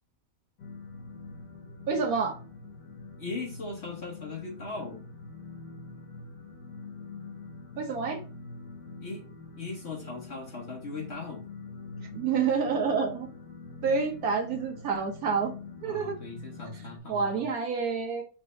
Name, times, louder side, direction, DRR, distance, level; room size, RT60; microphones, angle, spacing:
sound 1, 0.6-17.0, left 3 dB, 90° left, 1.5 m, -44 dB
voice 1, 1.9-2.4 7.8-8.2 12.1-13.3 13.8-15.5 15.8-16.1 17.1-18.2, right 5 dB, 85° right, 1 dB, 1.5 m, -28 dB
voice 2, 3.2-5.1 9.0-9.2 9.6-11.5 14.1-14.2 15.8-17.4, left 3 dB, 50° left, 0 dB, 1.2 m, -39 dB
5.2 x 2.6 x 3.1 m, 0.37 s
omnidirectional pair, 1.5 m